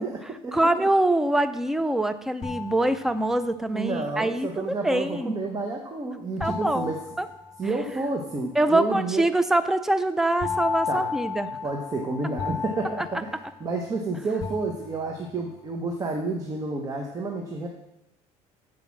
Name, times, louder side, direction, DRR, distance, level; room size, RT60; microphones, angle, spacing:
voice 1, 0.0-0.6 3.7-7.0 7.6-9.3 10.9-11.1 11.6-13.3 13.6-17.7, right 3 dB, 25° right, 2 dB, 0.9 m, -30 dB
voice 2, 0.5-5.4 6.4-7.3 8.5-11.5, right 1 dB, 5° right, 11 dB, 0.4 m, -24 dB
sound 1, 2.4-3.6 6.4-8.0 10.4-14.0 14.4-15.3, left 6 dB, 30° left, 1.0 m, -34 dB
8.2 x 4.9 x 7.2 m, 0.91 s
cardioid pair, 135°, 14 cm